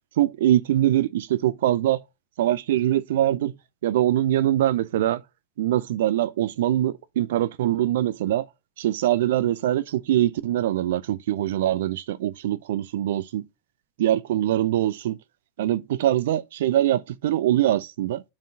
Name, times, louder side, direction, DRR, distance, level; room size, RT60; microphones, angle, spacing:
voice 1, 0.2-2.0 2.4-3.5 3.8-5.2 5.6-8.5 8.8-13.5 14.0-15.2 15.6-18.2, right 12 dB, 55° right, 0.4 m, -23 dB
6.0 x 4.3 x 6.0 m
figure-of-eight pair, 90°, 0 cm